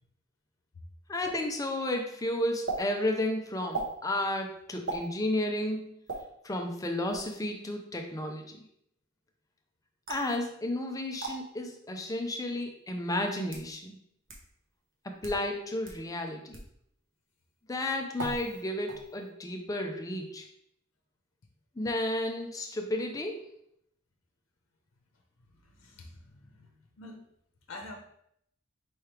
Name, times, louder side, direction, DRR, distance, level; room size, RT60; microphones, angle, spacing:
voice 1, 1.1-5.9 6.4-8.6 10.1-14.0 15.0-16.6 17.7-20.5 21.8-23.5, left 1 dB, 15° left, 4 dB, 0.4 m, -32 dB
sound 1, 2.7-2.8 3.7-3.9 4.9-5.1 6.1-6.2 7.1-7.4 10.1-10.3 11.2-11.3 12.3-12.4 13.2-13.7 14.3-14.4 15.1-15.4 15.8-16.0 16.5-16.7 18.2-18.6 18.9-19.3, right 3 dB, 65° right, 0.9 m, -37 dB
voice 2, 25.6-26.7 27.0-27.2 27.7-27.9, left 2 dB, 80° left, 2 dB, 0.7 m, -46 dB
4.6 x 3.1 x 3.3 m, 0.71 s
head